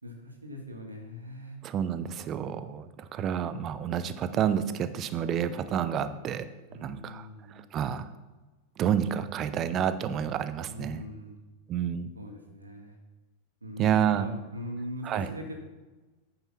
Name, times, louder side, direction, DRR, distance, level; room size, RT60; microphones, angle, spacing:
voice 1, 0.0-1.6 6.7-7.7 10.6-11.4 12.1-13.0 13.6-15.5, equal, 80° right, 3 dB, 1.8 m, -41 dB
voice 2, 1.6-6.5 6.8-8.1 8.8-11.0 11.7-12.1 13.8-14.2 15.0-15.3, right 9 dB, 30° right, 12 dB, 0.7 m, -29 dB
9.1 x 6.9 x 6.0 m, 1.2 s
figure-of-eight pair, 90°, 0 cm